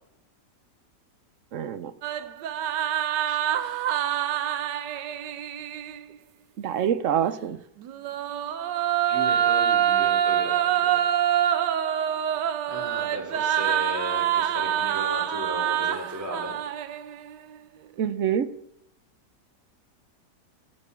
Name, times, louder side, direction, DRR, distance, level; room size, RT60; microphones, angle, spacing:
voice 1, 1.5-1.9 3.3-3.4 6.6-7.6 18.0-18.5, right 9 dB, 60° right, 14 dB, 0.9 m, -26 dB
sound 1, 2.0-6.0 7.8-17.3, right 10 dB, 85° right, 1.4 m, -26 dB
voice 2, 9.1-11.0 12.7-16.5, equal, 10° right, -1 dB, 3.6 m, -35 dB
13.0 x 10.0 x 6.9 m, 0.78 s
omnidirectional pair, 1.8 m